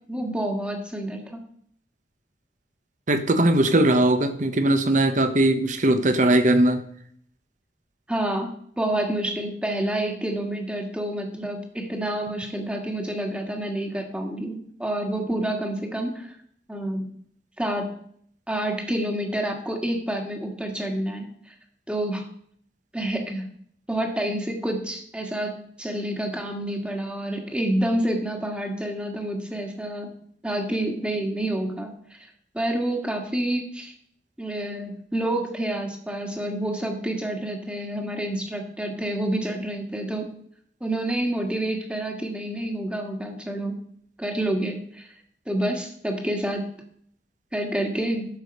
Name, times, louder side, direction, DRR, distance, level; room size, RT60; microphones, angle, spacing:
voice 1, 0.1-1.4 8.1-8.5 8.8-16.3 16.7-17.1 17.6-17.9 18.5-21.5 21.9-22.3 22.9-23.4 23.9-30.1 30.4-32.2 32.5-33.9 34.4-40.3 40.8-43.8 44.2-45.1 45.5-46.7 47.5-48.3, right 1 dB, 5° right, 3 dB, 1.7 m, -28 dB
voice 2, 3.1-6.8, right 1 dB, 45° right, 9 dB, 1.0 m, -20 dB
12.0 x 7.0 x 5.4 m, 0.64 s
head